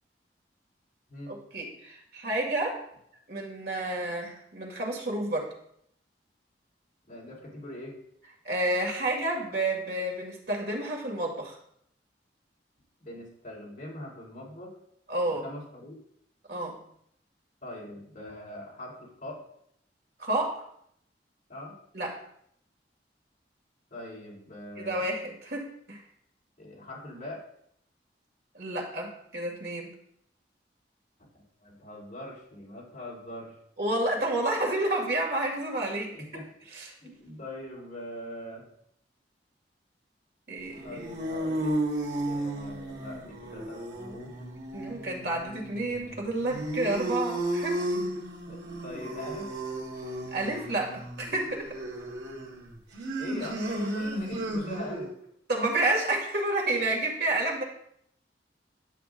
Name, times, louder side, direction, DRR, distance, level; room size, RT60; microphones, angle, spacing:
voice 1, 1.5-2.8 3.3-5.5 8.4-11.6 15.1-15.4 16.5-16.8 20.2-20.6 21.9-22.2 24.8-26.0 28.5-29.9 33.8-36.4 36.7-36.9 40.5-41.1 44.7-47.8 50.3-51.7 55.5-57.6, right 2 dB, 65° right, 1 dB, 2.1 m, -30 dB
voice 2, 7.1-8.0 13.0-14.8 15.3-16.0 17.6-19.4 21.5-21.7 23.9-25.1 26.6-27.4 31.6-33.6 36.1-36.5 37.0-38.7 40.8-41.8 42.2-44.3 48.5-49.5 53.2-55.1, left 1 dB, 50° left, -4 dB, 3.5 m, -42 dB
sound 1, 40.7-55.2, right 1 dB, 85° right, 1.7 m, -34 dB
10.0 x 8.3 x 2.5 m, 0.70 s
head